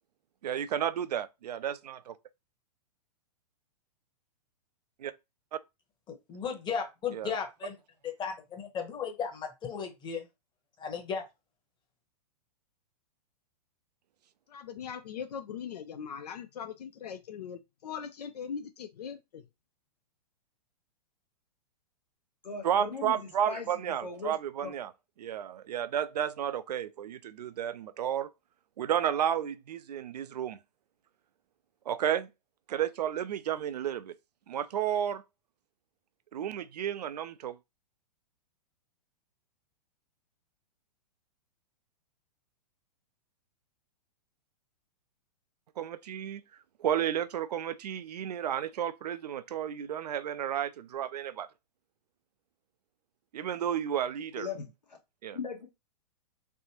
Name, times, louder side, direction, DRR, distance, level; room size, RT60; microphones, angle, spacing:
voice 1, 0.4-2.2 5.0-5.1 7.1-7.3 22.6-24.9 25.2-28.3 28.8-30.6 31.9-32.3 32.7-34.1 34.5-35.2 36.3-37.6 45.8-46.4 46.8-51.5 53.3-54.5 55.2-55.4, right 9 dB, 70° right, 0.4 m, -32 dB
voice 2, 6.3-7.8 8.0-10.2 10.8-11.2, left 6 dB, 20° left, 1.0 m, -35 dB
voice 3, 14.5-19.5, left 7 dB, 70° left, 0.5 m, -40 dB
voice 4, 22.4-24.3 24.6-24.7 54.4-54.7 55.3-55.7, left 5 dB, 85° left, 1.2 m, -38 dB
3.3 x 2.5 x 2.9 m
hypercardioid pair, 115°, 21 cm